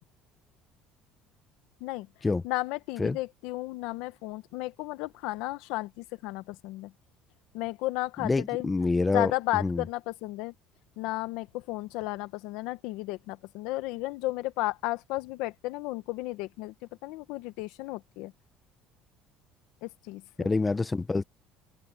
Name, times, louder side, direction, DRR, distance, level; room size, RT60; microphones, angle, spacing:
voice 1, 2.4-6.9 7.5-8.7 9.1-10.5 11.0-16.7 17.0-18.3 19.8-20.5, left 19 dB, 75° left, 1.0 m, -33 dB
voice 2, 8.2-9.3 9.6-9.8 20.4-21.2, left 3 dB, 10° left, 0.5 m, -26 dB
cardioid pair, 170°, 0 cm